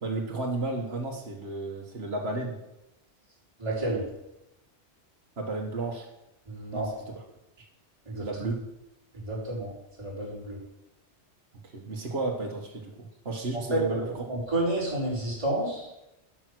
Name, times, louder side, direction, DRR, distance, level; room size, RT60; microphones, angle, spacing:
voice 1, 0.0-2.6 5.4-6.1 6.7-7.2 7.6-7.7 8.2-8.6 11.7-14.2, right 2 dB, 60° right, -1 dB, 1.7 m, -33 dB
voice 2, 3.6-4.0 6.5-6.9 8.0-8.2 9.3-9.7 10.0-10.6 13.7-15.9, right 1 dB, 25° right, -8 dB, 4.9 m, -30 dB
12.5 x 6.3 x 6.2 m, 0.90 s
omnidirectional pair, 1.2 m